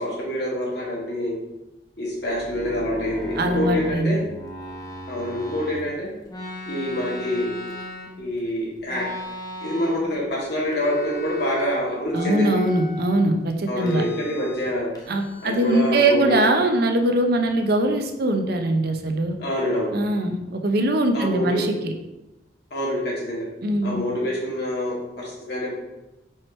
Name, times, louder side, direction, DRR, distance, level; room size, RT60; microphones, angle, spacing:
voice 1, 0.0-1.4 2.0-4.2 5.1-6.1 6.7-7.5 8.2-9.1 9.6-12.5 13.7-14.9 15.4-16.3 19.4-19.9 21.1-21.7 22.7-23.5 23.8-25.7, equal, 65° left, -5 dB, 2.2 m, -26 dB
sound 1, 2.2-5.8 6.3-8.4 8.9-10.1 10.4-11.7 12.1-13.3 13.8-14.7 15.0-16.1, equal, 20° left, 1.0 m, -36 dB
voice 2, 3.4-4.2 12.1-14.0 15.1-19.3 19.9-21.9 23.6-24.0, right 1 dB, 65° right, 5 dB, 0.7 m, -22 dB
4.7 x 4.5 x 4.3 m, 0.96 s
head